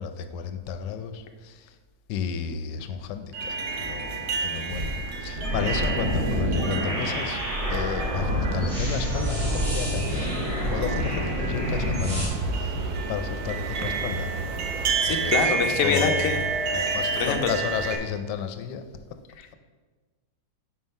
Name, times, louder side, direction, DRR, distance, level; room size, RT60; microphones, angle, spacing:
voice 1, 0.0-1.8 2.1-7.4 7.7-12.8 13.1-14.3 15.1-15.5 15.8-16.5 16.7-18.8, left 7 dB, 90° left, 9 dB, 1.2 m, -32 dB
sound 1, 3.3-18.0, right 4 dB, 75° right, 1.4 m, -30 dB
sound 2, 4.7-12.3, equal, 55° right, 2.5 m, -27 dB
voice 2, 15.0-16.4 16.9-17.5, left 5 dB, 60° left, 4 dB, 1.0 m, -25 dB
5.7 x 4.6 x 5.3 m, 1.3 s
omnidirectional pair, 1.8 m